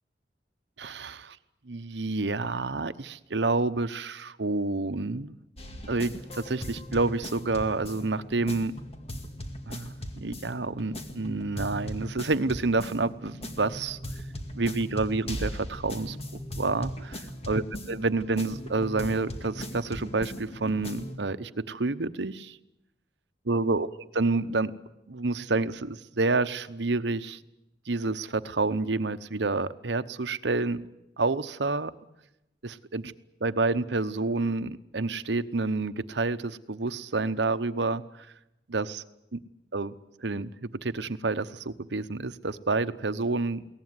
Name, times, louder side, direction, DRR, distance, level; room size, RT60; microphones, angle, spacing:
voice 1, 0.8-1.4 1.7-5.4 5.9-8.7 9.7-14.0 14.5-16.2 16.6-22.6 23.5-24.7 25.1-27.4 27.9-30.8 31.2-31.9 32.6-33.1 33.4-38.3 38.7-39.0 39.3-39.4 39.7-39.9 40.2-43.7, right 3 dB, 75° right, 12 dB, 0.9 m, -29 dB
sound 1, 5.6-21.1, equal, 35° left, 2.1 m, -39 dB
22.5 x 18.0 x 9.7 m, 0.90 s
head